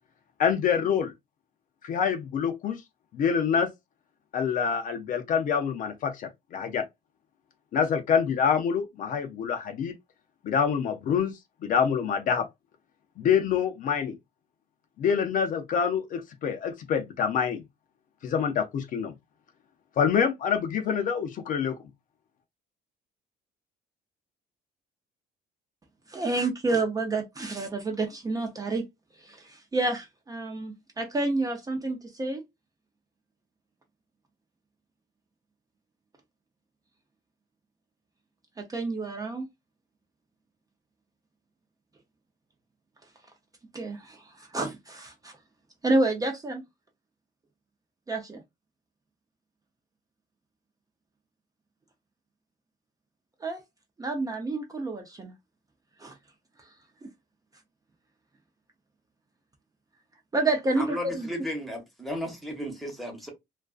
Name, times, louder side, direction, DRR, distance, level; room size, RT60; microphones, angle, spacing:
voice 1, 0.4-1.1 1.8-2.8 3.1-3.7 4.3-6.8 7.7-9.9 10.4-11.3 11.6-12.5 13.2-14.1 15.0-17.6 18.2-19.1 20.0-21.8, left 7 dB, 50° left, 0.5 m, -26 dB
voice 2, 26.1-28.9 29.2-32.4 38.6-39.4 43.7-45.3 45.8-46.6 48.1-48.4 53.4-53.6 54.0-55.3 56.0-56.1 56.6-56.7 60.3-61.3, right 2 dB, 20° right, 0.5 m, -29 dB
voice 3, 60.8-63.3, equal, ahead, 0.9 m, -34 dB
2.3 x 2.3 x 2.3 m
cardioid pair, 110°, 17 cm